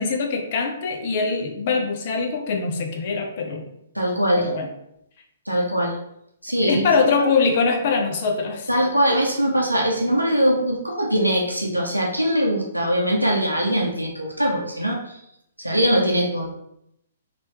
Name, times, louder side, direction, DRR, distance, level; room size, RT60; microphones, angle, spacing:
voice 1, 0.0-3.6 4.4-4.7 6.6-8.7, left 4 dB, 45° left, 3 dB, 0.6 m, -23 dB
voice 2, 3.9-4.5 5.5-6.0 6.4-6.9 7.2-7.3 8.7-15.0 15.6-16.5, equal, 90° right, 0 dB, 0.6 m, -21 dB
3.1 x 3.0 x 2.9 m, 0.76 s
figure-of-eight pair, 120°, 0 cm